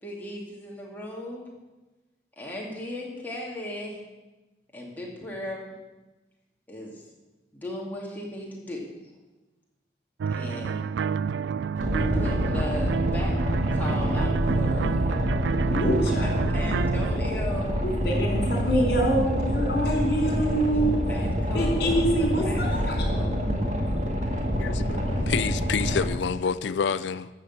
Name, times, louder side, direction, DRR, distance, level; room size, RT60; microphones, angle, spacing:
voice 1, 0.0-1.5 2.4-4.0 4.7-5.7 6.7-7.0 7.5-8.8 10.3-10.8 11.9-13.3 13.7-15.1 16.5-17.8 20.7-23.5, left 1 dB, 10° left, -3 dB, 2.6 m, -37 dB
sound 1, 10.2-17.2, right 6 dB, 80° right, 0.3 m, -29 dB
Boat Water vehicle, 11.8-26.0, equal, 40° right, 1.9 m, -26 dB
voice 2, 15.7-16.3 17.8-20.9 21.5-23.0, right 1 dB, 60° left, 1 dB, 4.0 m, -25 dB
voice 3, 24.5-27.3, left 6 dB, 80° left, 13 dB, 0.4 m, -28 dB
13.5 x 6.7 x 8.1 m, 1.1 s
head